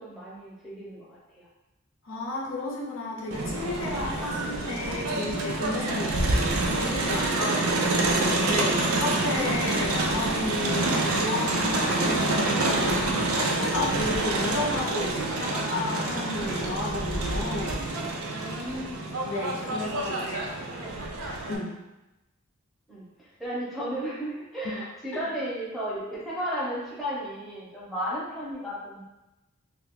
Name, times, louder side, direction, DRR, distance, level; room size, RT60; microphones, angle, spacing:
voice 1, 0.0-1.5 3.9-4.4 7.3-8.0 18.2-19.2 19.8-20.3 20.8-20.9 22.9-29.0, equal, ahead, -8 dB, 0.7 m, -35 dB
voice 2, 2.0-7.6 8.0-17.8 19.2-20.5 21.5-21.7 25.1-25.2, left 2 dB, 65° left, -3 dB, 0.6 m, -33 dB
Crowd, 3.3-21.6, right 2 dB, 90° right, 0.5 m, -27 dB
2.7 x 2.4 x 3.6 m, 1.0 s
head